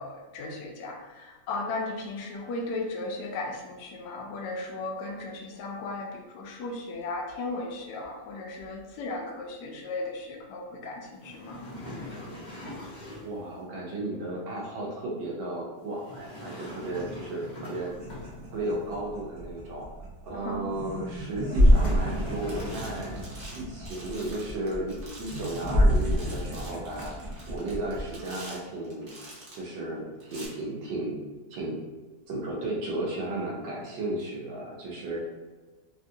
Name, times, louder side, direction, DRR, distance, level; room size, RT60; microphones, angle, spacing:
voice 1, 0.0-11.6 20.4-20.7, left 2 dB, 75° left, 0 dB, 0.9 m, -36 dB
sound 1, 11.2-13.4 16.0-18.7 21.4-23.4, left 1 dB, 40° left, 0.6 m, -41 dB
voice 2, 13.2-17.9 18.5-19.9 20.2-23.2 23.5-27.1 27.5-29.1 29.5-31.2 31.5-31.8 32.3-35.2, right 2 dB, 70° right, -2 dB, 1.3 m, -34 dB
sound 2, 17.9-28.1, equal, 50° right, 0.7 m, -28 dB
sound 3, 22.5-29.7 30.2-30.5, right 1 dB, 90° right, 0.4 m, -46 dB
3.4 x 2.3 x 2.6 m, 1.2 s
omnidirectional pair, 2.2 m